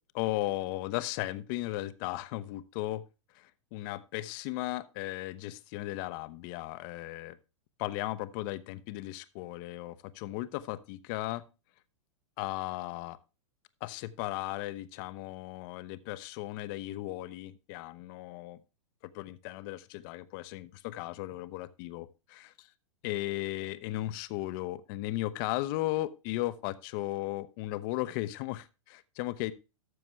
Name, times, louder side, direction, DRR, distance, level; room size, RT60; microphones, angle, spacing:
voice 1, 0.1-3.0 3.3-7.4 7.8-11.4 12.4-13.2 13.8-18.6 19.1-22.7 23.0-29.5, left 17 dB, 40° left, 14 dB, 0.7 m, -36 dB
12.5 x 7.0 x 3.1 m, 0.29 s
figure-of-eight pair, 105°, 16 cm